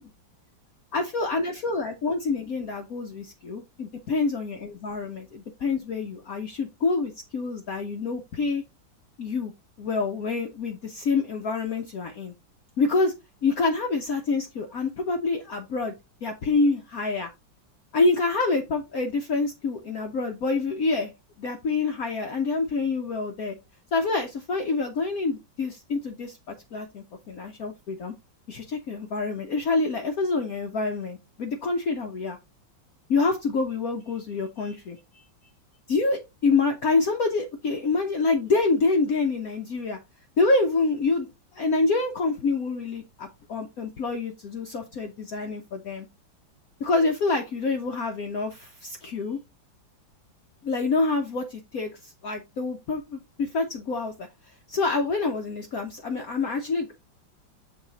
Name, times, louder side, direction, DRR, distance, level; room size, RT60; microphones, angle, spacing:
voice 1, 0.9-8.6 9.2-9.5 9.8-12.3 12.8-13.1 13.4-15.9 16.2-17.3 17.9-21.1 21.4-23.5 23.9-28.1 28.5-32.4 33.1-35.2 35.9-40.0 40.4-46.1 46.8-49.4 50.6-54.3 54.7-56.9, left 3 dB, 60° left, 3 dB, 1.1 m, -27 dB
6.8 x 4.2 x 3.9 m, 0.24 s
omnidirectional pair, 2.1 m